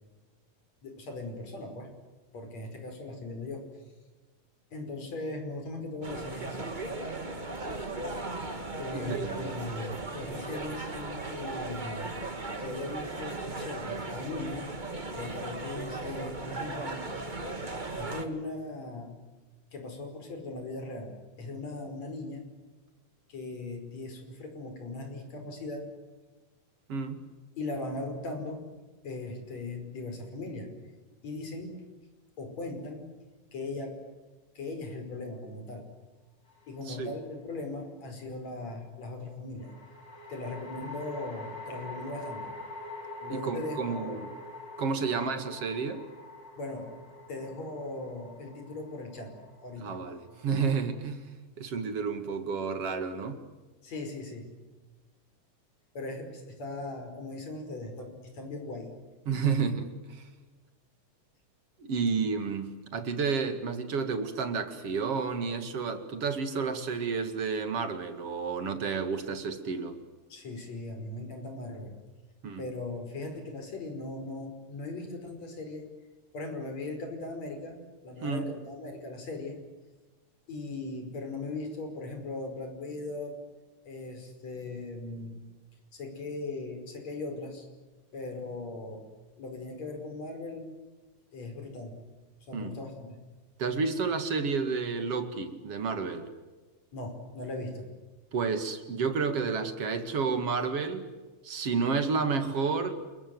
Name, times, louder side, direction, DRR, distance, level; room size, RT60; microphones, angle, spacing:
voice 1, 0.8-1.9 2.3-3.6 4.7-6.7 8.8-12.2 12.6-14.6 15.1-17.1 18.0-19.1 19.7-22.4 23.3-25.8 27.6-28.6 29.0-30.7 31.2-31.7 32.4-33.0 33.5-34.0 34.6-35.8 36.7-39.7 40.3-42.5 43.2-44.2 45.1-45.2 46.6-46.9 47.3-49.3 49.6-50.0 53.8-54.5 55.9-58.9 70.3-72.0 72.6-75.8 76.3-79.6 80.5-83.4 83.9-85.4 85.9-87.7 88.1-89.0 89.3-90.7 91.3-92.0 92.5-93.2 96.9-97.9, left 2 dB, 55° left, 5 dB, 6.3 m, -39 dB
sound 1, 6.0-18.3, right 2 dB, 20° right, 1.5 m, -37 dB
voice 2, 8.9-9.5 26.9-27.2 36.9-37.1 43.3-44.3 44.8-46.0 49.8-53.4 59.3-60.2 61.8-70.0 72.4-72.6 78.2-78.5 92.5-92.8 93.6-96.3 98.3-101.0 101.4-103.0, right 5 dB, 50° right, 9 dB, 2.9 m, -31 dB
sound 2, 36.5-37.2 39.6-50.9, left 2 dB, 30° left, 7.1 m, -45 dB
29.0 x 22.0 x 7.9 m, 1.2 s
omnidirectional pair, 3.6 m